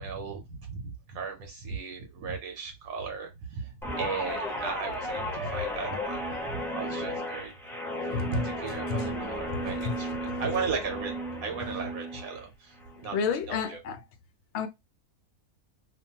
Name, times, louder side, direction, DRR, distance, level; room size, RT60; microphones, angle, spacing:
voice 1, 0.0-7.5 8.0-12.7 13.0-13.2 13.5-13.8, right 5 dB, 70° right, 1.1 m, -36 dB
Guitar, 3.8-12.4 12.8-13.1, equal, ahead, 0.5 m, -34 dB
voice 2, 8.1-8.5 8.9-9.1 9.5-10.0 13.1-14.0 14.5-14.7, left 6 dB, 65° left, 0.7 m, -31 dB
2.5 x 2.3 x 2.7 m
omnidirectional pair, 1.6 m